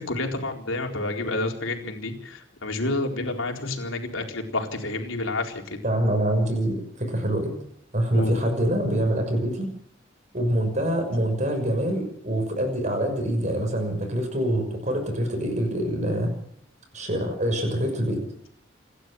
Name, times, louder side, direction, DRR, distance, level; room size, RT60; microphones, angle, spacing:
voice 1, 0.0-5.8 8.1-8.3, left 2 dB, 85° left, 2 dB, 4.2 m, -29 dB
voice 2, 5.8-7.5 7.9-9.7 10.3-16.3 16.9-18.2, right 1 dB, 35° right, 4 dB, 6.3 m, -25 dB
28.0 x 12.0 x 7.8 m, 0.69 s
head